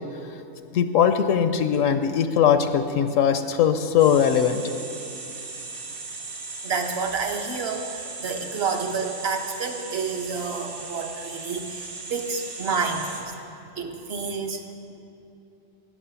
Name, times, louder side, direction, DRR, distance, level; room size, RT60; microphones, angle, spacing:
voice 1, 0.7-4.6, left 8 dB, 75° left, 9 dB, 0.9 m, -20 dB
sound 1, 4.0-13.2, right 3 dB, 80° right, 2.0 m, -37 dB
voice 2, 6.6-13.3 13.8-14.6, right 5 dB, 50° right, 4 dB, 1.2 m, -29 dB
12.5 x 9.5 x 7.0 m, 2.7 s
omnidirectional pair, 1.4 m